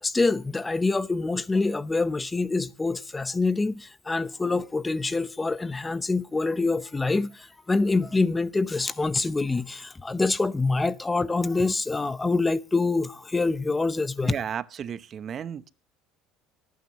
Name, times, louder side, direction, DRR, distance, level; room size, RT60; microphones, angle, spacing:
voice 1, 0.0-14.3, left 3 dB, 15° left, 0.7 m, -26 dB
voice 2, 14.2-15.7, right 8 dB, 40° right, 0.8 m, -33 dB
25.0 x 9.5 x 3.0 m
supercardioid pair, 115°, 0 cm